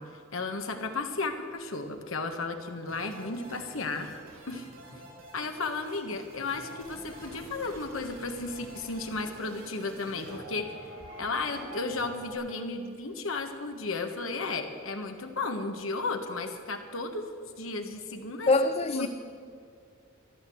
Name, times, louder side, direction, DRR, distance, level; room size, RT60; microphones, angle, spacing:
voice 1, 0.0-4.1 4.5-4.7 5.3-10.8 11.2-18.5 18.9-19.1, left 3 dB, 80° left, 1.6 m, -34 dB
sound 1, 2.9-12.3, equal, 75° right, 4.4 m, -47 dB
voice 2, 18.5-19.1, left 3 dB, 30° left, 0.4 m, -24 dB
13.5 x 12.0 x 7.9 m
head